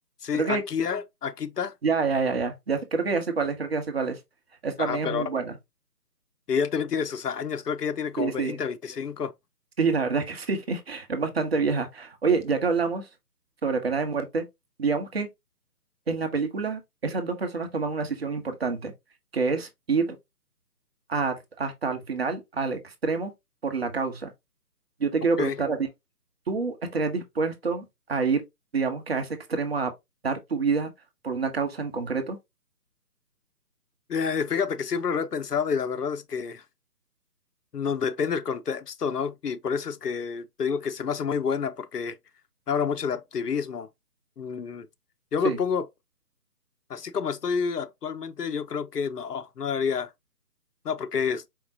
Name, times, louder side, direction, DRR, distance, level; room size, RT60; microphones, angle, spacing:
voice 1, 0.2-1.7 4.8-5.3 6.5-9.3 25.4-25.6 34.1-36.6 37.7-42.2 42.7-43.9 44.4-44.9 45.3-45.9 46.9-50.1 50.8-51.4, left 6 dB, 80° left, 0.7 m, -29 dB
voice 2, 1.8-4.2 4.6-5.6 8.2-8.6 9.8-13.1 13.6-14.4 14.8-15.3 16.1-18.9 19.3-20.1 21.1-23.3 23.6-24.3 25.0-25.9 26.5-28.4 28.7-29.9 30.2-30.9 31.2-32.4 45.4-45.6, right 4 dB, 40° right, 0.9 m, -27 dB
4.6 x 3.6 x 2.7 m
figure-of-eight pair, 150°, 47 cm